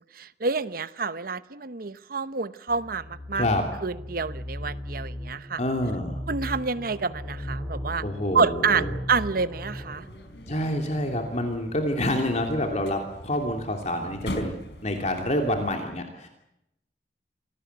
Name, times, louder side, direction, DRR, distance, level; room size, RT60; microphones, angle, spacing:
voice 1, 0.0-3.5 3.8-5.6 6.3-8.0 8.3-10.1, right 5 dB, 55° right, 14 dB, 0.9 m, -28 dB
sound 1, 2.7-9.9, equal, 5° right, 7.5 m, -37 dB
voice 2, 5.6-6.2 8.0-8.9 10.5-14.6 14.8-16.3, left 1 dB, 40° left, 3 dB, 2.9 m, -27 dB
sound 2, 9.9-15.8, left 1 dB, 75° left, 4.4 m, -40 dB
26.5 x 18.5 x 8.2 m, 0.84 s
head